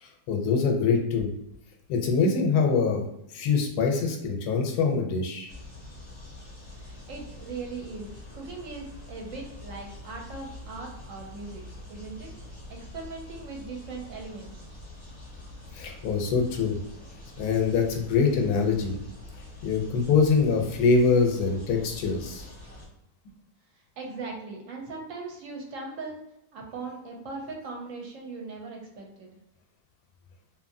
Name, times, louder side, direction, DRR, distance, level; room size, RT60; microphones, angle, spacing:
voice 1, 0.0-1.3 1.9-3.0 3.3-5.5 15.7-16.8 17.4-19.0 19.6-22.5, left 4 dB, 85° left, 2 dB, 1.1 m, -24 dB
sound 1, 5.5-22.9, left 1 dB, 30° left, 0.4 m, -45 dB
voice 2, 6.8-12.3 12.7-14.6 24.0-26.2 26.5-29.4, right 3 dB, 65° right, 0 dB, 1.0 m, -39 dB
2.7 x 2.5 x 2.6 m, 0.84 s
omnidirectional pair, 1.6 m